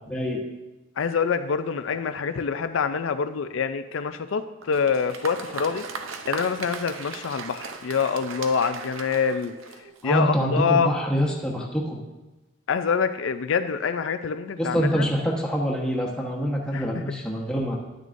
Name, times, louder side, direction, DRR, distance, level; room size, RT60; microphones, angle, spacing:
voice 1, 0.1-0.4 10.0-12.0 14.6-17.8, equal, 5° left, -2 dB, 1.2 m, -25 dB
voice 2, 1.0-5.8 6.3-9.5 10.0-11.0 12.7-15.0 16.7-16.9, left 6 dB, 75° left, 10 dB, 0.4 m, -25 dB
Applause, 4.6-10.2, right 4 dB, 90° right, 0.7 m, -38 dB
10.5 x 9.2 x 2.6 m, 1.1 s
head